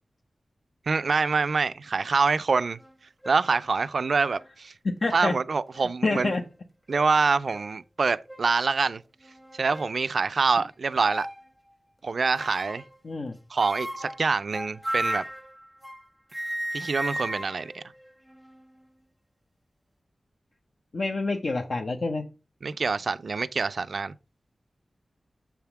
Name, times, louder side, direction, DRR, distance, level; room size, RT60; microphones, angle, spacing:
voice 1, 0.9-2.8 3.3-4.7 5.1-6.3 6.9-9.0 9.5-11.3 12.0-12.8 13.5-15.2 16.7-17.8 22.6-24.1, right 4 dB, 70° right, 0.4 m, -25 dB
sound 1, 2.8-2.9 3.2-3.6 4.4-4.5 5.7-6.5 6.9-7.1 7.5-7.7 8.3-8.6 9.2-10.0 11.0-11.4 12.4-13.0 13.6-16.1 16.3-18.7, right 1 dB, ahead, 0.7 m, -36 dB
voice 2, 5.0-5.3 6.0-6.4 13.0-13.4 20.9-22.2, left 3 dB, 65° left, 0.7 m, -27 dB
7.2 x 3.5 x 5.8 m
wide cardioid pair, 95°, 0 cm